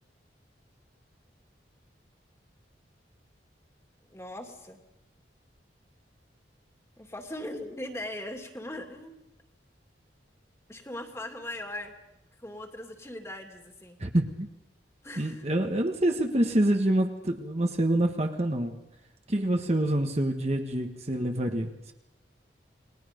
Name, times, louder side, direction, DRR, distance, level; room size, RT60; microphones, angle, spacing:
voice 1, 4.1-4.8 7.0-9.2 10.7-11.9 12.4-14.0 15.0-15.4, left 1 dB, 15° left, 4 dB, 2.5 m, -39 dB
voice 2, 14.0-14.5 15.2-18.8 19.3-21.9, right 1 dB, 35° right, 4 dB, 1.5 m, -26 dB
29.5 x 21.0 x 5.3 m, 0.93 s
head